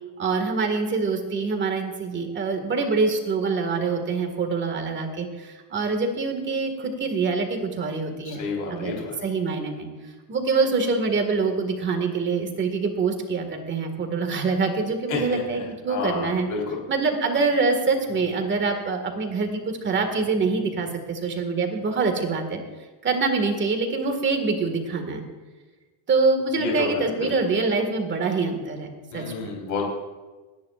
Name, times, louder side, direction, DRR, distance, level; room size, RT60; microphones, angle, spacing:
voice 1, 0.2-8.4 8.7-9.9 10.3-16.5 16.9-22.6 23.0-25.2 26.1-28.9 29.1-29.5, right 4 dB, 25° right, 5 dB, 2.0 m, -25 dB
voice 2, 8.2-9.2 15.1-15.4 15.9-16.8 26.6-27.3 29.1-29.8, left 4 dB, 45° left, -2 dB, 4.3 m, -30 dB
30.0 x 10.5 x 2.5 m, 1.3 s
cardioid pair, 160°, 41 cm